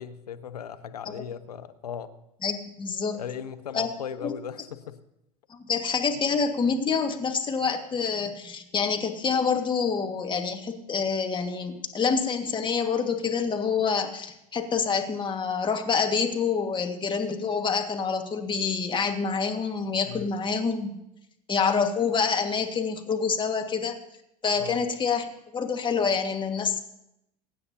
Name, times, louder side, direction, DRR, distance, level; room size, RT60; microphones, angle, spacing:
voice 1, 0.0-2.1 3.1-5.0 20.1-20.3 24.6-24.8, left 8 dB, 80° left, 9 dB, 0.9 m, -37 dB
voice 2, 2.4-3.2 3.7-3.9 4.2-4.3 5.7-21.0 21.5-23.9 24.4-25.3 25.5-26.8, left 5 dB, 25° left, 3 dB, 1.9 m, -27 dB
23.0 x 9.3 x 2.9 m, 0.82 s
hypercardioid pair, 80°, 20 cm